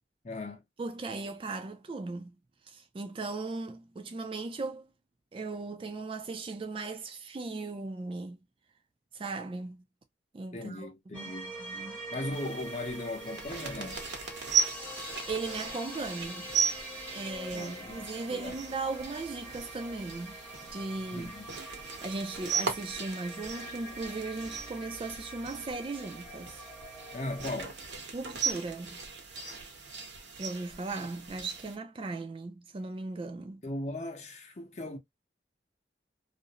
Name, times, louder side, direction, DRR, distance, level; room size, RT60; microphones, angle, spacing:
voice 1, 0.2-0.6 10.5-11.5 12.1-14.0 17.5-18.5 21.1-21.4 27.1-27.7 33.6-35.0, left 2 dB, 40° left, 0.7 m, -38 dB
voice 2, 0.8-2.3 2.7-4.9 5.3-8.4 9.1-9.8 10.3-11.3 11.6-12.0 15.3-16.5 17.1-20.4 20.7-21.3 22.0-26.6 28.1-29.0 30.4-33.6, right 3 dB, 30° right, 0.3 m, -37 dB
sound 1, 11.1-27.5, right 1 dB, 10° left, 0.8 m, -44 dB
sound 2, 12.3-31.8, right 5 dB, 90° right, 0.9 m, -37 dB
2.5 x 2.0 x 2.7 m
head